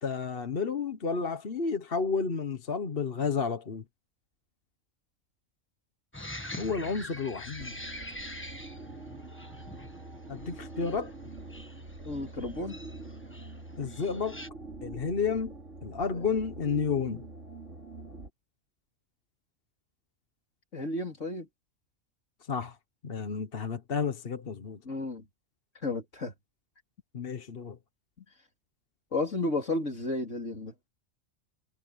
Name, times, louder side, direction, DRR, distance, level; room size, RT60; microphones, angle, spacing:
voice 1, 0.0-3.8 6.6-7.7 10.3-11.1 13.8-14.4 14.8-15.6 15.8-17.2 22.5-22.8 23.0-24.8 27.1-27.8, left 5 dB, 45° left, 1.3 m, -31 dB
sound 1, 6.1-14.5, left 1 dB, 10° left, 1.4 m, -45 dB
sound 2, 7.6-18.3, right 3 dB, 65° right, 3.2 m, -45 dB
voice 2, 12.0-12.8 16.1-16.3 20.7-21.5 24.8-25.3 25.8-26.3 29.1-30.7, left 2 dB, 65° left, 4.1 m, -32 dB
omnidirectional pair, 1.4 m